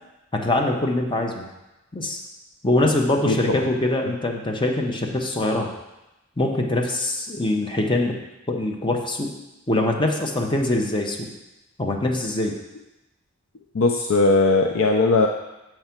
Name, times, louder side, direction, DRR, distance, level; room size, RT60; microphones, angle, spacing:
voice 1, 0.3-1.4 1.9-2.2 2.6-5.7 6.4-8.1 8.5-9.3 9.7-11.3 11.8-12.5, left 1 dB, 25° left, 1 dB, 0.9 m, -23 dB
voice 2, 3.3-3.6 13.7-15.3, left 3 dB, 75° left, 3 dB, 0.5 m, -19 dB
6.5 x 4.6 x 5.8 m, 0.99 s
head